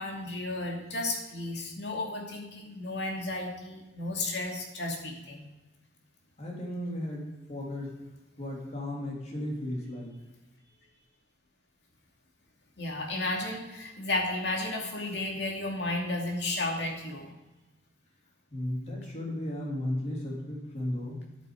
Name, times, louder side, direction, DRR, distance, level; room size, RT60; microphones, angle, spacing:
voice 1, 0.0-5.5 12.8-17.3, left 2 dB, 70° left, 0 dB, 2.5 m, -33 dB
voice 2, 6.4-7.9 8.4-10.2 18.5-21.2, left 1 dB, 40° left, -2 dB, 3.3 m, -35 dB
11.0 x 9.0 x 5.0 m, 1.0 s
head